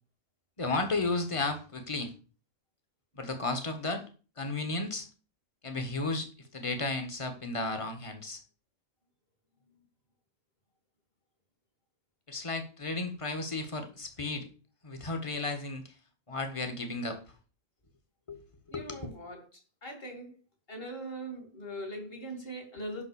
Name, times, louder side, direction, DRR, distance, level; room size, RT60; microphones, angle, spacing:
voice 1, 0.6-2.1 3.1-4.1 4.4-5.1 5.6-8.4 12.3-14.5 14.8-15.8 16.3-17.2 18.3-18.4 18.7-19.1, left 3 dB, 25° left, 1.6 m, -33 dB
voice 2, 18.7-19.4 19.8-20.4 20.7-23.0, right 1 dB, 50° left, 2.8 m, -41 dB
11.5 x 3.9 x 7.0 m
omnidirectional pair, 1.2 m